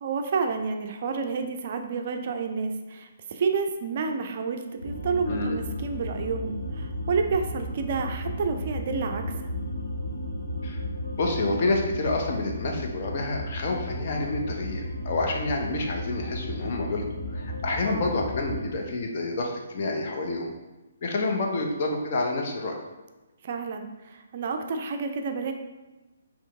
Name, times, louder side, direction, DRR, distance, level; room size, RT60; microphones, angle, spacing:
voice 1, 0.0-9.2 17.9-18.1 23.4-25.5, right 5 dB, 40° right, 5 dB, 0.4 m, -30 dB
sound 1, 4.8-18.6, left 1 dB, 80° left, 1.2 m, -34 dB
voice 2, 5.3-5.6 10.6-10.8 11.2-17.0 17.3-20.5 21.0-22.8, left 2 dB, 40° left, 1 dB, 0.7 m, -28 dB
4.4 x 2.9 x 3.5 m, 1.1 s
figure-of-eight pair, 135°, 0 cm